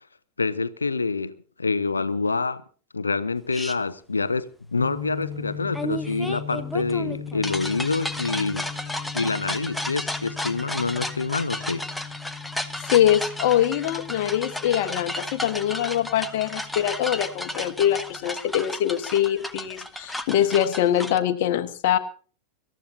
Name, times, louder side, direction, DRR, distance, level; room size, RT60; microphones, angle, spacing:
voice 1, 0.4-1.3 1.6-2.6 2.9-8.9 9.1-11.8, left 4 dB, 75° left, 0.9 m, -27 dB
sound 1, 3.5-3.8 5.7-21.2, left 1 dB, 5° left, 1.1 m, -33 dB
sound 2, 4.8-18.2, left 6 dB, 35° right, 3.2 m, -39 dB
voice 2, 12.8-22.0, left 11 dB, 50° left, 1.4 m, -23 dB
25.5 x 14.0 x 2.8 m
figure-of-eight pair, 90°, 0 cm